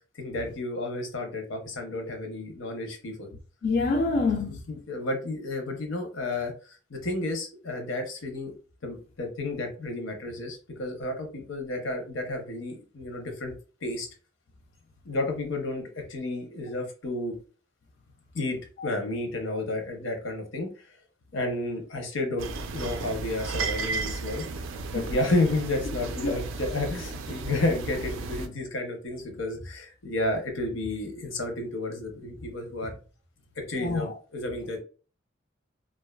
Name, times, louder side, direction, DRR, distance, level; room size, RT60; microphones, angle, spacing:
voice 1, 0.2-3.3 4.7-6.5 6.9-8.5 8.8-13.5 13.8-14.1 15.0-17.3 18.3-18.6 18.8-20.7 21.3-24.4 24.9-32.9 33.7-34.8, left 2 dB, 80° left, 0.7 m, -31 dB
voice 2, 3.6-4.6 26.2-26.3 33.7-34.1, left 3 dB, 55° left, 0.3 m, -25 dB
sound 1, 22.4-28.5, right 3 dB, 90° right, 0.4 m, -34 dB
2.5 x 2.3 x 2.2 m
head